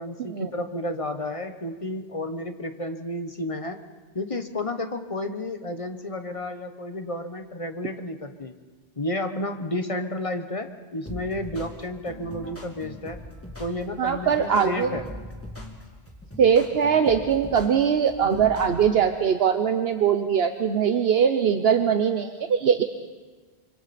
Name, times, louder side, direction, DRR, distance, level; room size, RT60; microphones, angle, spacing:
voice 1, 0.0-3.8 4.1-8.6 9.0-13.2 13.6-15.1, left 1 dB, 35° left, 7 dB, 1.1 m, -31 dB
sound 1, 11.1-19.0, left 1 dB, 15° left, 2.0 m, -41 dB
voice 2, 14.0-15.0 16.4-22.8, right 7 dB, 70° right, 7 dB, 1.1 m, -21 dB
25.0 x 24.5 x 4.3 m, 1.4 s
omnidirectional pair, 1.1 m